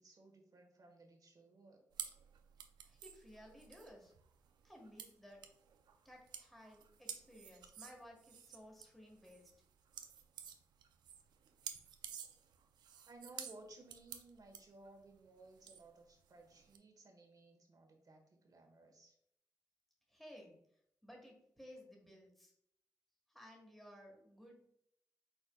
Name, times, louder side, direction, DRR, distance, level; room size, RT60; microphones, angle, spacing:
voice 1, 0.0-1.9 13.0-19.2, right 2 dB, 55° right, 3 dB, 1.2 m, -59 dB
sound 1, 1.9-16.8, right 8 dB, 80° right, 0.4 m, -52 dB
voice 2, 2.8-4.1 4.6-5.5 6.0-9.5 20.1-20.6 21.0-22.5 23.3-24.6, equal, 5° left, 0 dB, 1.5 m, -57 dB
4.9 x 4.2 x 2.3 m, 0.74 s
supercardioid pair, 40°, 7 cm